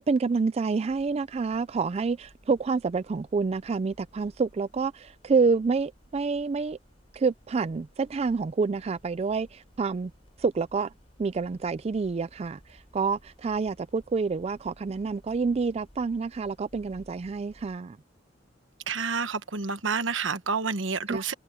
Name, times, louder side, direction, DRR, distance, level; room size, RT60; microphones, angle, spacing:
voice 1, 0.0-6.8 7.1-10.1 10.4-10.9 11.2-18.0 21.1-21.2, right 4 dB, 35° right, 0.3 m, -28 dB
sound 1, 0.8-17.8, equal, 30° left, 6.9 m, -58 dB
voice 2, 18.9-21.3, right 5 dB, 80° right, 1.2 m, -29 dB
head